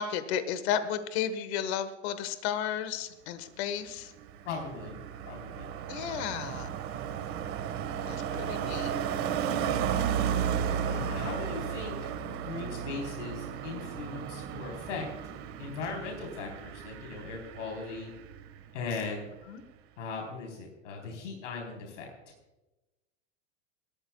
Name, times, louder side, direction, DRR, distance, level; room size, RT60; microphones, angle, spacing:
voice 1, 0.0-4.1 5.9-6.7 8.1-8.9 19.5-19.6, left 9 dB, 60° left, 12 dB, 1.4 m, -33 dB
Car passing by, 3.8-18.6 18.9-19.2, right 8 dB, 40° right, 1.5 m, -34 dB
voice 2, 4.4-5.0 5.2-5.7 10.9-12.1 12.4-15.0 15.6-18.1 18.7-19.3 20.0-22.1, left 4 dB, 85° left, 1 dB, 3.9 m, -38 dB
29.0 x 13.5 x 2.3 m, 1.0 s
supercardioid pair, 140°, 36 cm